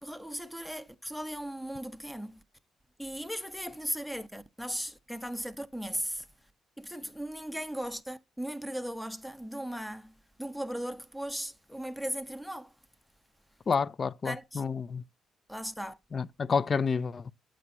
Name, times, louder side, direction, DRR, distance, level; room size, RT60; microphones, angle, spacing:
voice 1, 0.0-2.4 3.0-6.3 6.8-12.7 14.2-14.6 15.5-16.0, equal, 5° left, 0.8 m, -37 dB
voice 2, 13.7-15.0 16.1-17.3, left 5 dB, 40° left, 0.4 m, -29 dB
9.2 x 7.5 x 2.7 m
cardioid pair, 90°, 0 cm